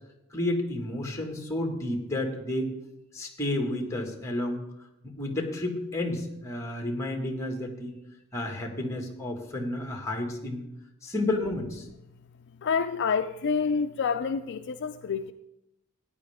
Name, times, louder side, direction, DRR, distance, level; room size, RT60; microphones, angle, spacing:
voice 1, 0.3-2.7 3.1-4.7 5.2-8.0 8.3-10.6 11.0-11.9, left 1 dB, 15° left, 1.8 m, -31 dB
voice 2, 12.6-15.3, left 5 dB, 55° left, 0.4 m, -28 dB
15.0 x 9.8 x 3.6 m
head